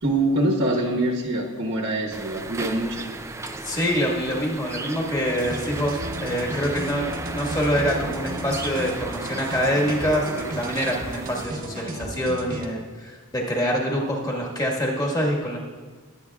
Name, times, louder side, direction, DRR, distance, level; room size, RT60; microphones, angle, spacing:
voice 1, 0.0-3.0, right 1 dB, 55° right, -1 dB, 1.2 m, -24 dB
sound 1, 2.1-11.5, right 3 dB, 15° right, 0.3 m, -35 dB
voice 2, 3.6-15.6, equal, 15° left, -2 dB, 1.7 m, -25 dB
sound 2, 5.3-12.7, right 1 dB, 40° right, 1.0 m, -34 dB
21.0 x 8.0 x 2.4 m, 1.4 s
head